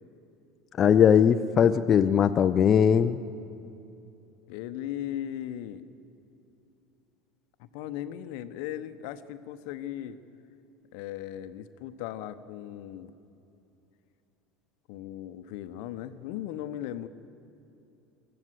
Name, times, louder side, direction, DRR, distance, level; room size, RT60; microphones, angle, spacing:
voice 1, 0.8-3.2, left 8 dB, 40° left, 9 dB, 0.6 m, -20 dB
voice 2, 4.5-5.8 7.6-10.2 10.9-13.1 14.9-17.1, left 11 dB, 65° left, 12 dB, 1.0 m, -37 dB
24.5 x 14.5 x 8.1 m, 2.8 s
hypercardioid pair, 75°, 0 cm